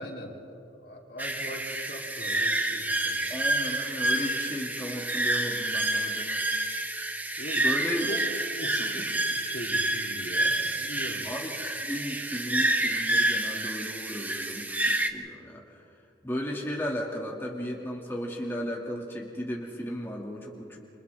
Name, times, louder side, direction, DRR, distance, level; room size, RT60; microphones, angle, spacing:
voice 1, 0.0-3.3 7.4-7.6 8.0-8.2 8.6-11.3, equal, 65° left, -1 dB, 3.3 m, -41 dB
sound 1, 1.2-15.1, right 1 dB, 10° right, 0.9 m, -28 dB
voice 2, 3.3-6.4 7.6-8.2 11.2-15.8 16.2-21.0, equal, 15° left, -2 dB, 2.3 m, -35 dB
29.5 x 27.5 x 3.6 m, 2.7 s
head